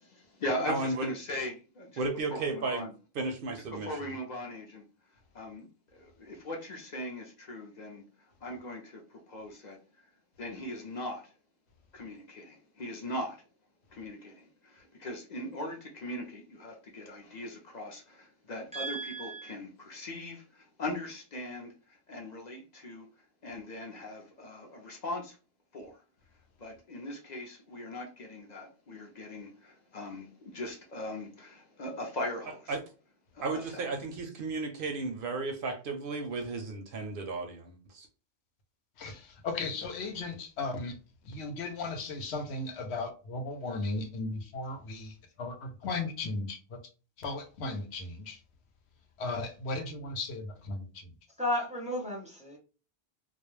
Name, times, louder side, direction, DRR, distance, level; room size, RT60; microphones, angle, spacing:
voice 1, 0.0-2.0 2.3-2.9 3.7-4.8 5.3-8.0 8.4-10.1 10.4-11.3 11.9-13.4 13.9-23.1 23.4-25.4 25.7-26.0 26.6-32.8 33.3-33.8, left 1 dB, 50° left, 0.6 m, -40 dB
voice 2, 0.7-1.1 2.0-2.9 3.2-4.1 32.7-32.8 33.4-38.1, right 3 dB, 65° right, 0.7 m, -34 dB
voice 3, 18.7-19.5 51.4-52.6, equal, 10° right, 0.6 m, -34 dB
voice 4, 39.0-41.0 41.2-45.0 45.4-45.5 45.8-46.6 47.2-48.4 49.2-51.1, left 3 dB, 90° left, 0.9 m, -36 dB
2.3 x 2.1 x 3.0 m
omnidirectional pair, 1.1 m